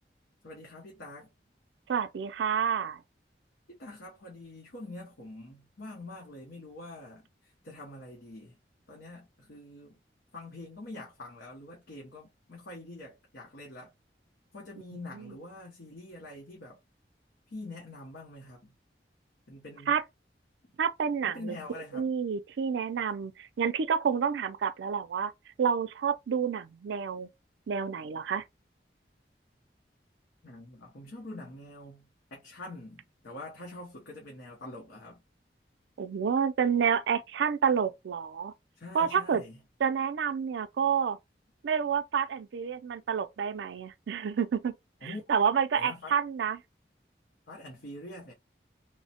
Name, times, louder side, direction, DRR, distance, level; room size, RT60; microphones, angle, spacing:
voice 1, 0.4-1.3 3.7-8.6 8.9-10.0 10.3-13.9 14.5-16.8 17.5-18.7 19.5-20.0 21.2-22.1 30.4-35.2 38.8-39.6 45.0-45.2 45.8-46.1 47.5-48.3, left 2 dB, 80° left, 0.8 m, -45 dB
voice 2, 1.9-3.0 15.1-15.4 19.9-20.0 20.8-25.3 25.6-27.3 27.7-28.4 36.0-38.5 38.9-39.4 39.8-41.2 41.6-44.8 45.0-46.6, right 7 dB, 90° right, 0.4 m, -29 dB
3.1 x 2.1 x 2.8 m
head